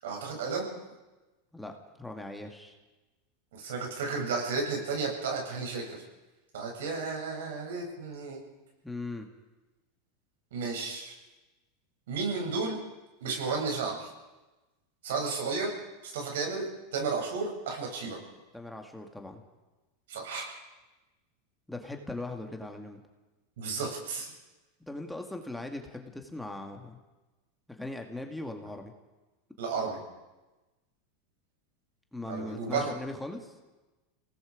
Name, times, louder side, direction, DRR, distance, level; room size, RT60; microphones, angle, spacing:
voice 1, 0.0-0.7 3.5-6.0 6.5-8.4 10.5-11.1 12.1-12.8 13.2-14.1 15.0-15.7 16.0-16.7 16.9-18.2 20.1-20.5 23.6-24.3 29.6-30.0 32.3-32.9, right 4 dB, 85° right, 0 dB, 7.9 m, -33 dB
voice 2, 1.5-2.8 8.8-9.3 18.5-19.4 21.7-23.0 24.9-27.0 27.7-28.9 32.1-33.5, left 2 dB, 5° left, 3 dB, 2.0 m, -39 dB
28.0 x 18.5 x 5.2 m, 1.1 s
supercardioid pair, 135°, 0 cm